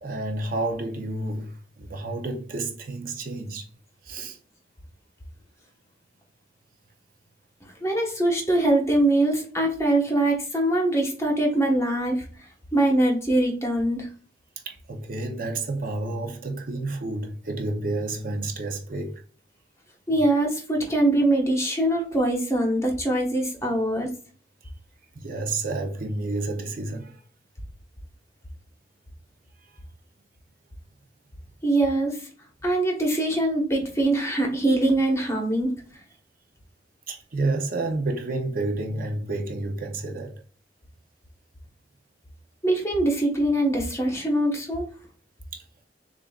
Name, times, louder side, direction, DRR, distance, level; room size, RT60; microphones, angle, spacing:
voice 1, 0.0-3.7 4.0-4.4 14.7-19.2 25.2-27.2 37.1-40.3 45.5-45.6, right 2 dB, 55° right, 0.6 m, -30 dB
voice 2, 7.8-12.2 12.7-14.1 20.1-24.1 31.6-32.2 32.6-35.7 42.6-44.9, right 1 dB, 15° left, 1.1 m, -23 dB
6.8 x 2.5 x 2.3 m
head